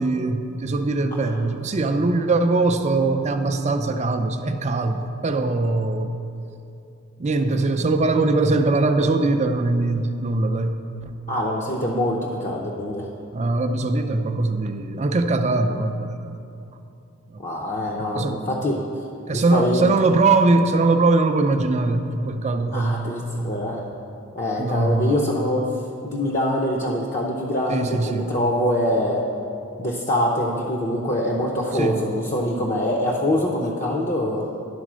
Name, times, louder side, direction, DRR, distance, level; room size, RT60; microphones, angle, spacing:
voice 1, 0.0-6.1 7.2-10.8 13.3-16.4 17.3-17.4 18.1-18.4 19.3-23.1 24.6-25.2 27.7-28.3 31.7-32.0, right 3 dB, 30° right, 7 dB, 0.4 m, -21 dB
voice 2, 11.3-13.1 17.4-18.8 19.3-19.9 22.7-23.8 24.3-25.6 26.0-29.2 29.8-34.5, left 1 dB, 35° left, -3 dB, 0.7 m, -24 dB
11.0 x 4.1 x 6.2 m, 2.7 s
head